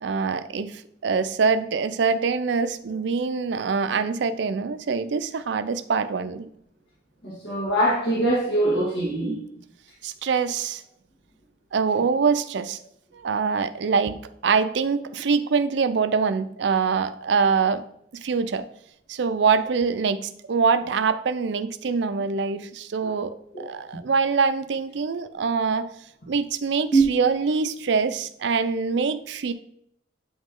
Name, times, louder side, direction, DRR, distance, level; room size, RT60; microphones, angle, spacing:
voice 1, 0.0-6.5 10.0-10.8 11.7-12.8 13.1-17.8 18.1-18.7 19.1-25.9 26.3-29.5, right 5 dB, 65° right, 11 dB, 0.4 m, -24 dB
voice 2, 7.2-9.4 23.0-23.1 23.5-23.7 26.9-27.0, right 2 dB, 75° left, -6 dB, 1.8 m, -22 dB
8.6 x 3.1 x 3.7 m, 0.69 s
head